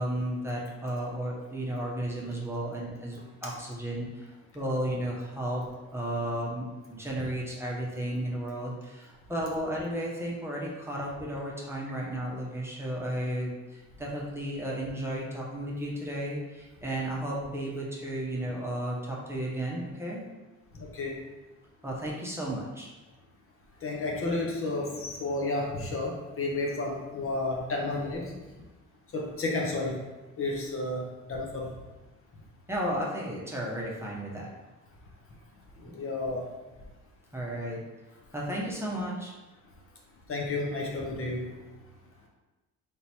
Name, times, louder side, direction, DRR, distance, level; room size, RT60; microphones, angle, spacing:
voice 1, 0.0-5.6 5.9-20.2 21.8-22.9 32.7-34.5 37.3-37.8 38.3-39.3, right 1 dB, 10° right, -4 dB, 0.9 m, -33 dB
voice 2, 20.7-21.2 23.8-28.4 29.1-30.0 30.4-31.7 35.8-36.4 40.3-41.5, left 2 dB, 45° left, -1 dB, 0.9 m, -32 dB
3.5 x 2.9 x 4.2 m, 1.1 s
cardioid pair, 90°, 30 cm